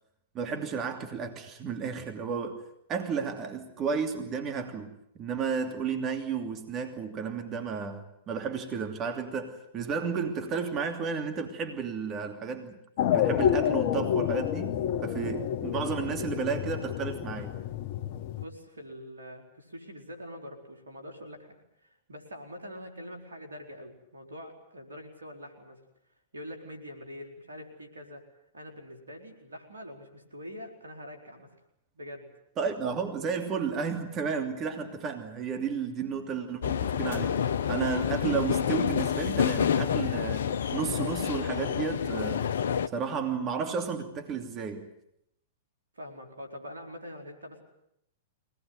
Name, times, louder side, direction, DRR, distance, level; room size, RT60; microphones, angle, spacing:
voice 1, 0.3-2.6 2.9-12.8 13.1-17.6 32.6-37.4 37.7-42.5 42.9-44.9, right 6 dB, 35° right, 2.9 m, -32 dB
sound 1, 13.0-18.4, left 10 dB, 50° left, 1.1 m, -29 dB
voice 2, 18.4-21.6 21.8-25.8 26.3-28.2 28.5-31.5 31.9-32.3 45.9-47.6, equal, 90° right, 4.6 m, -44 dB
sound 2, 36.6-42.9, left 8 dB, 70° left, 1.0 m, -28 dB
23.5 x 19.0 x 9.6 m
hypercardioid pair, 110°, 0 cm